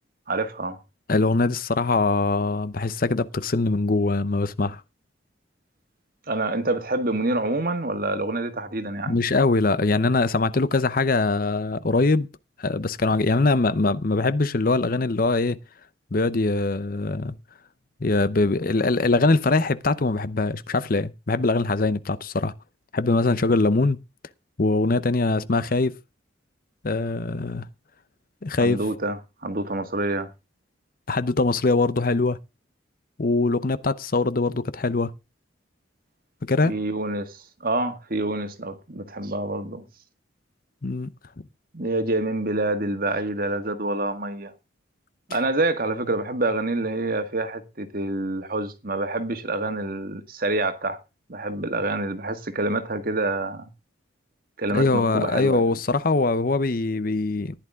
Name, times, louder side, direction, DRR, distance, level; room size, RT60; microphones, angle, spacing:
voice 1, 0.3-0.8 6.3-9.2 28.6-30.3 36.6-39.8 41.7-44.5 45.3-51.0 51.3-53.7 54.6-55.6, right 2 dB, 50° right, 1.8 m, -27 dB
voice 2, 1.1-4.8 9.1-12.3 12.6-15.6 16.1-17.3 18.0-22.5 22.9-24.0 24.6-25.9 26.8-27.7 28.4-28.8 31.1-32.4 33.2-35.1 36.4-36.7 40.8-41.1 54.7-57.5, left 3 dB, 45° left, 0.7 m, -22 dB
15.0 x 11.0 x 3.6 m
head